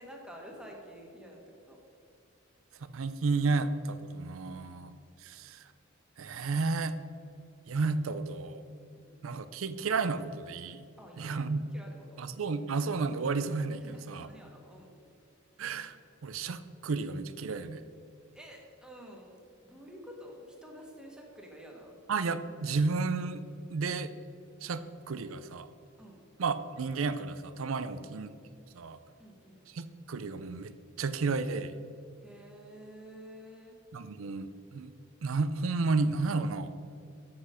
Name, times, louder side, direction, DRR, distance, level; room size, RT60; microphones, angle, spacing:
voice 1, 0.0-1.4 1.7-1.8 4.4-4.8 8.9-9.2 11.0-12.2 13.7-15.0 17.8-17.9 18.3-21.9 26.0-26.2 29.2-29.6 32.2-33.8, equal, 5° right, -1 dB, 1.4 m, -50 dB
voice 2, 2.9-5.0 5.2-5.6 6.2-6.9 7.7-8.6 9.2-10.9 11.2-11.6 12.2-14.3 15.6-16.0 16.2-17.8 22.1-23.4 23.7-24.1 24.6-25.7 26.4-28.3 28.7-29.0 29.7-30.7 31.0-31.8 33.9-34.9 35.2-36.9, right 4 dB, 80° right, 13 dB, 0.5 m, -32 dB
7.7 x 6.0 x 6.4 m, 2.5 s
head